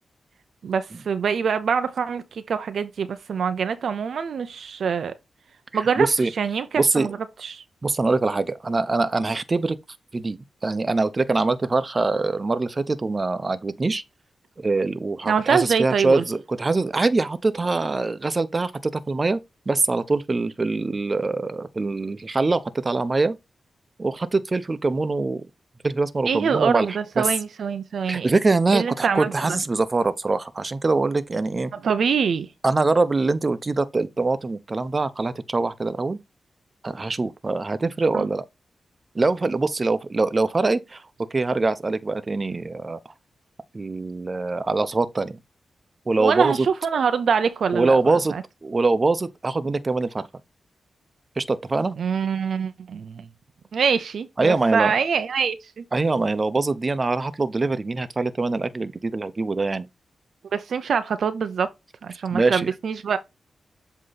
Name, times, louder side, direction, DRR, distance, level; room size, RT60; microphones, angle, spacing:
voice 1, 0.6-5.1 5.7-6.1 6.4-7.6 15.3-16.2 26.3-28.3 28.7-29.6 31.7-32.5 38.1-38.3 46.2-48.4 52.0-53.3 53.7-55.8 60.5-61.7 62.0-63.2, right 6 dB, 80° right, 0.6 m, -24 dB
voice 2, 5.7-6.3 6.8-7.1 7.8-9.8 10.1-14.0 14.6-19.4 19.7-23.4 24.0-25.4 25.8-27.2 28.1-31.7 32.6-36.2 36.8-38.4 39.1-41.0 41.3-43.0 43.7-45.4 46.1-46.6 47.7-48.3 48.6-50.3 51.4-52.0 54.4-54.9 55.9-59.9 62.3-62.7, right 3 dB, 40° right, 0.8 m, -23 dB
7.7 x 3.1 x 4.0 m
cardioid pair, 60°, 0 cm